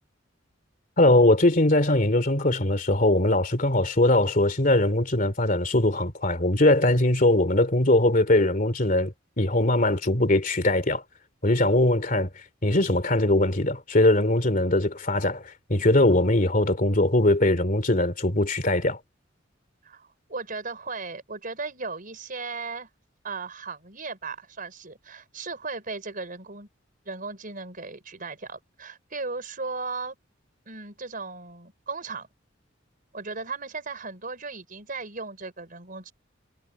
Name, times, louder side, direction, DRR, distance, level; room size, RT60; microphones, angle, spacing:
voice 1, 1.0-11.0 11.4-12.3 12.6-19.0, left 1 dB, 45° left, 2.8 m, -21 dB
voice 2, 19.8-22.9 23.2-26.7 27.0-30.2 30.7-32.3 33.1-36.1, right 4 dB, 45° right, 4.5 m, -36 dB
head